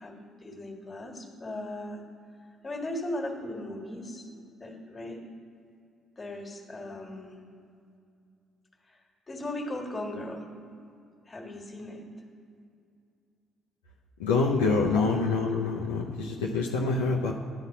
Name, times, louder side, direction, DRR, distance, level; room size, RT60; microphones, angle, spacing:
voice 1, 0.0-2.0 2.6-4.3 4.6-5.2 6.2-7.4 8.9-9.0 9.3-10.5 11.3-12.0 14.8-15.0, left 1 dB, 30° left, 1 dB, 1.6 m, -37 dB
voice 2, 14.2-17.3, left 4 dB, 85° left, -2 dB, 0.6 m, -26 dB
11.0 x 4.1 x 7.2 m, 2.4 s
hypercardioid pair, 50°, 0 cm